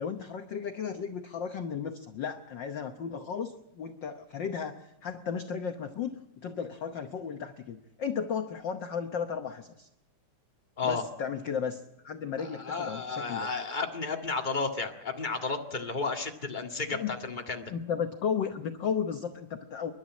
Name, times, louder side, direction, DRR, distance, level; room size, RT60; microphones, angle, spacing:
voice 1, 0.0-9.9 10.8-13.5 16.9-17.2 17.7-19.9, left 7 dB, 70° left, 6 dB, 1.1 m, -34 dB
voice 2, 12.4-17.6, left 4 dB, 20° left, 2 dB, 1.5 m, -33 dB
28.0 x 11.5 x 8.6 m, 0.91 s
omnidirectional pair, 3.3 m